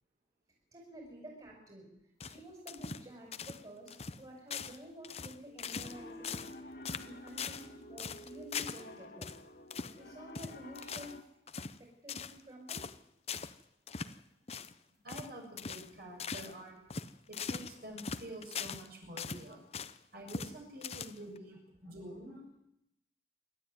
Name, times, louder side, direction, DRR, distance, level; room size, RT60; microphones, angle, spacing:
voice 1, 0.7-1.9 2.2-6.4 6.8-9.3 9.9-11.1 12.0-12.8, equal, 25° right, -2 dB, 5.6 m, -50 dB
sound 1, 2.2-3.1 3.3-3.6 3.9-4.2 4.5-4.8 5.0-6.0 6.2-6.6 6.8-7.7 8.0-8.9 9.2-9.4 9.7-10.0 10.3-11.2 11.5-11.8 12.1-12.4 12.7-13.0 13.3-13.5 13.9-14.1 14.5-14.7 15.1-15.3 15.6-15.9 16.2-16.5 16.9-18.9 19.2-20.0 20.3-20.5 20.8-21.4, left 5 dB, 35° left, 0.7 m, -41 dB
Piano, 5.6-11.2, left 1 dB, 55° left, 2.0 m, -50 dB
voice 2, 15.0-16.8 17.3-19.7 20.1-22.4, right 1 dB, 55° right, 1 dB, 7.5 m, -48 dB
26.5 x 12.0 x 9.6 m, 0.82 s
head